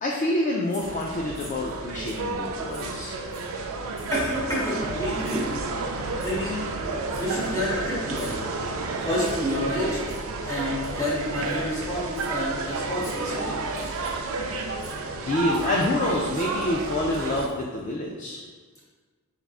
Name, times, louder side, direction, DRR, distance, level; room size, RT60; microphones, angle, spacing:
voice 1, 0.0-3.2 15.2-18.4, left 1 dB, 35° left, -1 dB, 0.3 m, -27 dB
sound 1, 0.7-1.8 2.1-2.3 2.7-3.6 4.0-4.3 5.2-5.6 6.2-6.4 7.1-7.8 8.1-8.5 9.2-9.5 10.0-10.3 10.8-11.2 11.5-11.6 12.1-12.3 13.0-13.3 13.7-14.3 14.8-15.0 15.5-16.0 16.3-17.8, equal, 50° left, 1.4 m, -47 dB
sound 2, 0.8-17.5, right 3 dB, 65° right, 0.4 m, -31 dB
voice 2, 4.1-5.4 6.2-6.6 7.2-8.4 9.0-10.0 10.4-13.5, left 1 dB, 15° left, -7 dB, 1.2 m, -29 dB
4.8 x 3.4 x 2.4 m, 1.5 s
head